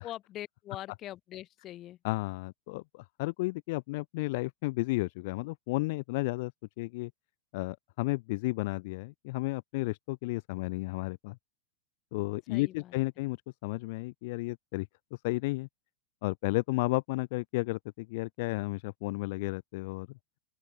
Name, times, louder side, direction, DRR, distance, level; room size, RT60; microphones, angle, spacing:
voice 1, 0.0-2.0 12.5-12.9, left 13 dB, 35° left, 1.5 m, -43 dB
voice 2, 2.0-6.5 6.8-7.1 7.5-11.4 12.1-13.4 13.6-15.7 16.2-20.1, left 23 dB, 50° left, 0.5 m, -33 dB
open air
figure-of-eight pair, 90°, 0 cm